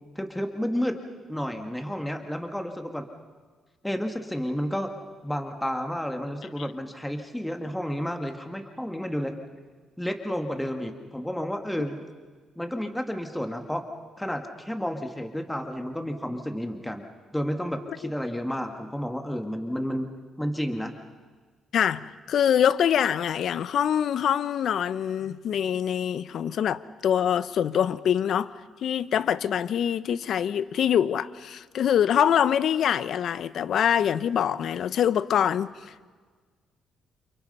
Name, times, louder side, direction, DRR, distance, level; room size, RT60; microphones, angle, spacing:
voice 1, 0.2-1.0 1.3-3.1 3.8-4.9 5.2-9.3 10.0-12.0 12.6-13.8 14.2-17.0 17.3-20.1 20.4-20.9, equal, 5° left, 2.2 m, -31 dB
voice 2, 21.7-28.5 28.8-35.7, left 9 dB, 65° left, 0.9 m, -24 dB
29.5 x 28.5 x 5.7 m
cardioid pair, 90°, 0 cm